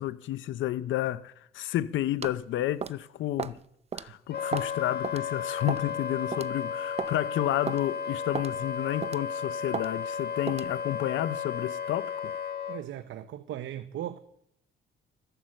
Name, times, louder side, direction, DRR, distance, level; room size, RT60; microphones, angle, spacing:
voice 1, 0.0-3.6 3.9-12.3, left 13 dB, 75° left, 0.6 m, -31 dB
sound 1, 2.2-2.4 2.8-3.0 3.4-3.6 3.9-4.1 4.5-4.7 5.0-5.2 5.7-5.9 6.3-6.5 7.0-7.1 7.7-7.8 8.3-8.5 9.0-9.3 9.7-9.9 10.5-10.7, right 6 dB, 30° right, 0.6 m, -34 dB
Wind instrument woodwind instrument, 4.3-12.8, left 7 dB, 55° left, 1.4 m, -34 dB
voice 2, 12.7-14.2, right 11 dB, 75° right, 0.8 m, -37 dB
14.0 x 11.5 x 7.7 m
cardioid pair, 90°, 20 cm